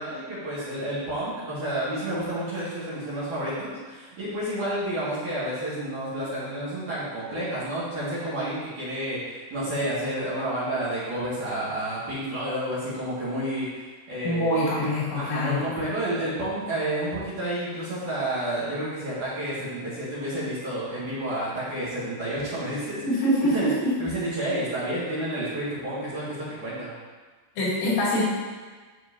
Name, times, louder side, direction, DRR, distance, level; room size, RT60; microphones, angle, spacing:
voice 1, 0.0-14.9 15.1-23.7 24.0-26.9, right 1 dB, 50° right, -10 dB, 2.8 m, -30 dB
voice 2, 14.2-15.6 23.0-23.9 27.6-28.2, left 1 dB, 80° left, -8 dB, 4.9 m, -24 dB
12.5 x 4.4 x 2.7 m, 1.4 s
omnidirectional pair, 5.4 m